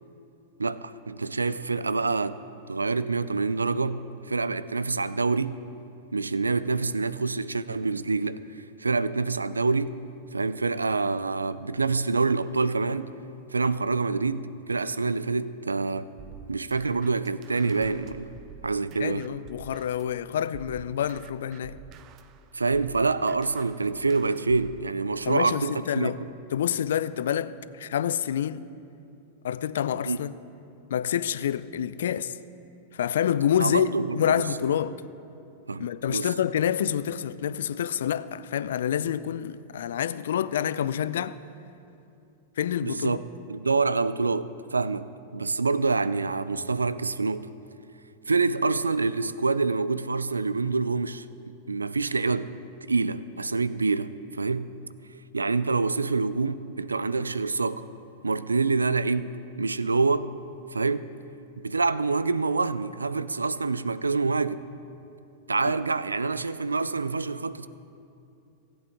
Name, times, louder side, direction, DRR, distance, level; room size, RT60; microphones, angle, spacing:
voice 1, 0.6-5.6 6.1-8.4 8.8-10.0 10.3-13.2 13.5-16.1 16.5-18.3 18.6-19.3 22.5-26.3 30.1-30.2 33.6-34.2 34.6-34.7 35.7-36.3 42.8-43.2 43.5-47.5 48.3-52.5 52.8-54.7 55.3-57.9 58.2-59.3 59.6-60.3 60.7-61.1 61.6-64.7 65.5-67.7, right 4 dB, 85° right, 0.3 m, -26 dB
sound 1, 16.2-20.2 20.5-24.9, right 7 dB, 40° right, 0.6 m, -48 dB
voice 2, 19.0-21.8 25.3-26.2 26.5-28.7 29.4-30.3 30.9-32.3 32.9-35.0 35.8-41.4 42.6-43.2, left 9 dB, 70° left, 0.3 m, -27 dB
17.0 x 8.5 x 3.6 m
figure-of-eight pair, 95°, 0 cm